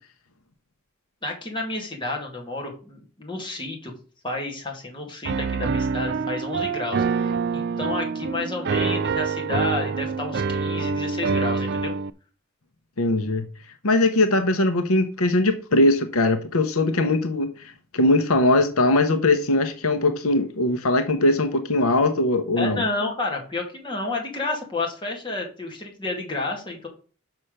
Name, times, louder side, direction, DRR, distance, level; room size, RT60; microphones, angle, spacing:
voice 1, 1.2-3.9 4.2-11.9 22.6-26.9, left 2 dB, 20° left, 2.2 m, -30 dB
Piano, 5.2-12.1, right 5 dB, 50° right, 0.4 m, -26 dB
voice 2, 13.0-13.5 13.8-22.8, left 2 dB, 75° left, 0.9 m, -21 dB
6.2 x 5.7 x 6.6 m
head